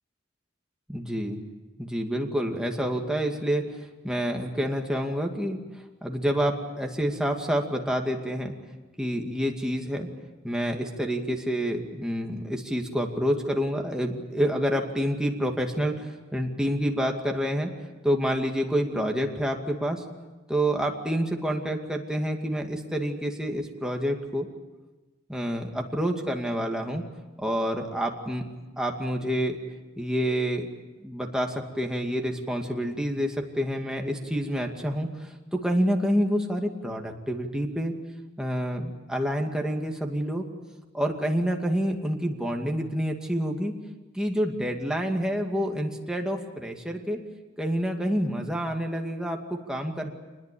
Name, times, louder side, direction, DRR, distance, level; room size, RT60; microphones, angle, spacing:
voice 1, 0.9-1.4 1.8-3.6 4.0-5.6 6.0-8.5 9.0-10.1 10.4-17.7 18.0-20.0 20.5-24.5 25.3-27.0 27.4-28.5 28.8-29.6 30.0-30.7 31.0-35.1 35.5-37.9 38.4-40.5 40.9-43.8 44.1-47.2 47.6-50.1, equal, 5° right, 1 dB, 2.4 m, -28 dB
26.5 x 20.5 x 8.6 m, 1.2 s
head